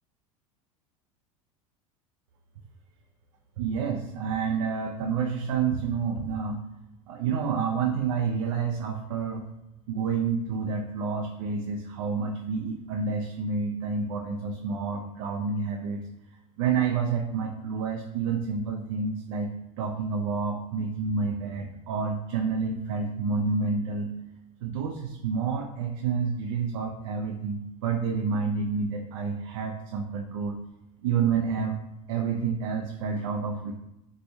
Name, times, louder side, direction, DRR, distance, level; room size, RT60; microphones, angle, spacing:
voice 1, 3.6-6.6 7.1-9.4 9.9-16.0 16.6-19.5 19.8-24.1 24.6-30.6 31.0-31.8 32.1-33.7, right 5 dB, 65° right, 2 dB, 0.4 m, -29 dB
4.1 x 2.2 x 3.0 m, 0.88 s
hypercardioid pair, 75°, 18 cm